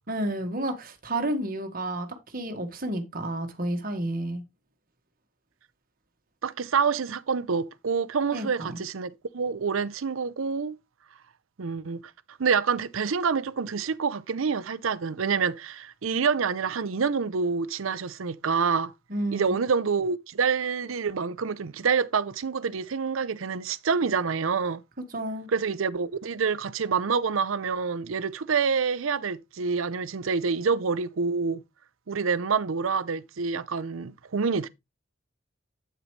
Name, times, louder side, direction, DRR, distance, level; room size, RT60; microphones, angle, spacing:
voice 1, 0.1-2.1 2.3-4.4 8.3-8.8 19.1-19.6 25.1-25.5, right 1 dB, 45° right, 1.6 m, -31 dB
voice 2, 6.4-10.8 11.6-12.0 12.3-18.9 19.3-24.8 25.5-31.6 32.1-34.7, right 5 dB, 80° right, 0.6 m, -27 dB
8.7 x 8.0 x 3.2 m
head